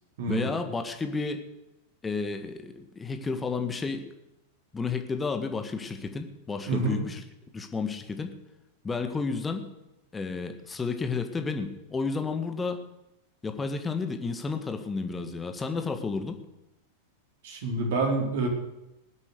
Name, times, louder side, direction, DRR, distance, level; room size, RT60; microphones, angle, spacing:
voice 1, 0.3-1.4 2.0-4.1 4.7-7.2 7.5-8.4 8.8-9.7 10.1-12.8 13.4-16.4, left 4 dB, 15° left, 6 dB, 1.7 m, -31 dB
voice 2, 6.7-7.0 17.4-18.5, right 3 dB, 60° right, 1 dB, 4.3 m, -27 dB
20.0 x 8.2 x 6.9 m, 0.89 s
figure-of-eight pair, 95°, 0 cm